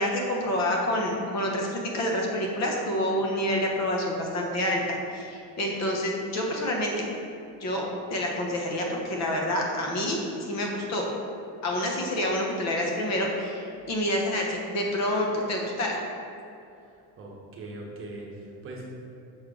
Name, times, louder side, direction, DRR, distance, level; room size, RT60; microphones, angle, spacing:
voice 1, 0.0-7.0 7.6-11.1 11.6-16.0, left 1 dB, 40° left, 0 dB, 1.0 m, -28 dB
voice 2, 17.2-18.9, right 2 dB, 30° right, -2 dB, 1.0 m, -40 dB
6.2 x 4.4 x 5.0 m, 2.7 s
cardioid pair, 160°, 40 cm